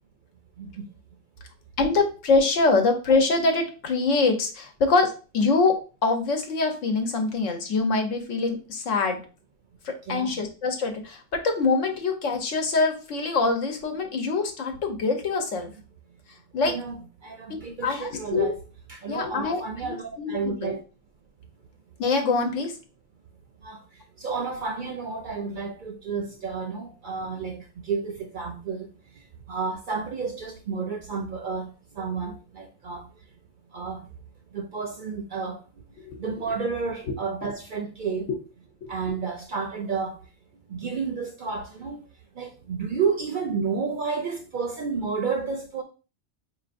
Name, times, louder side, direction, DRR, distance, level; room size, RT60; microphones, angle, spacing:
voice 1, 1.8-9.2 9.8-15.7 16.5-16.7 17.5-18.5 19.1-20.4 20.6-20.7 22.0-22.7 36.0-36.2 38.8-38.9, left 3 dB, 85° left, 1.2 m, -24 dB
voice 2, 10.0-10.4 16.6-18.6 18.9-20.8 23.6-23.8 24.2-28.9 29.5-33.1 33.7-34.1 34.5-35.6 36.2-38.3 38.9-40.2 40.7-42.0 42.3-45.8, right 5 dB, 60° right, 0.5 m, -31 dB
4.6 x 2.9 x 2.5 m
omnidirectional pair, 1.3 m